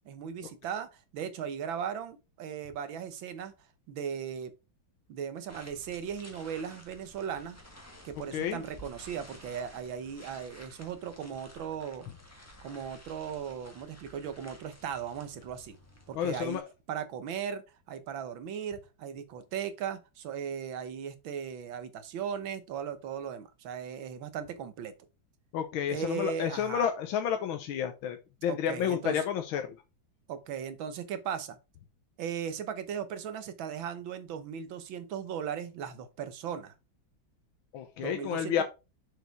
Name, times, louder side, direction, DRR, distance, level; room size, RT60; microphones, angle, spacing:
voice 1, 0.1-3.5 3.9-4.5 5.1-7.6 8.0-12.1 12.6-15.8 16.1-16.6 16.9-17.6 17.9-24.9 25.9-26.9 28.5-29.2 30.3-31.6 32.2-36.7 38.0-38.6, right 8 dB, 75° right, 1.8 m, -37 dB
sound 1, 5.5-16.6, equal, 10° left, 1.3 m, -53 dB
voice 2, 16.2-16.6 25.5-28.2 28.4-29.6 37.7-38.6, left 9 dB, 85° left, 1.6 m, -30 dB
7.0 x 4.9 x 4.5 m
omnidirectional pair, 2.2 m